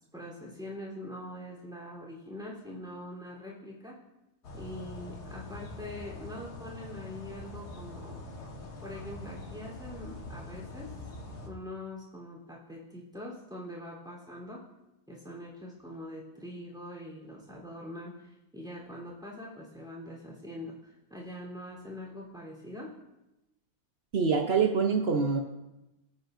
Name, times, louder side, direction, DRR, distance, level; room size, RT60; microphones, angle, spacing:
voice 1, 0.1-3.9 4.5-8.3 8.8-10.9 11.4-14.6 15.1-22.9, left 1 dB, ahead, -4 dB, 3.5 m, -43 dB
sound 1, 4.4-11.5, left 2 dB, 55° left, 2.0 m, -44 dB
voice 2, 24.1-25.4, right 5 dB, 55° right, 2 dB, 0.7 m, -25 dB
23.5 x 9.0 x 2.7 m, 0.97 s
omnidirectional pair, 2.1 m